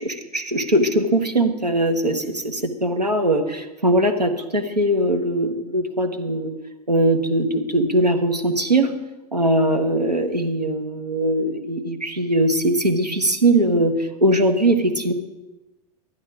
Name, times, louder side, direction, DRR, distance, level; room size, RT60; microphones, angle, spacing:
voice 1, 0.0-6.5 6.9-8.9 9.3-15.1, right 1 dB, 90° right, 4 dB, 1.1 m, -21 dB
12.0 x 9.9 x 4.7 m, 1.0 s
figure-of-eight pair, 90°, 20 cm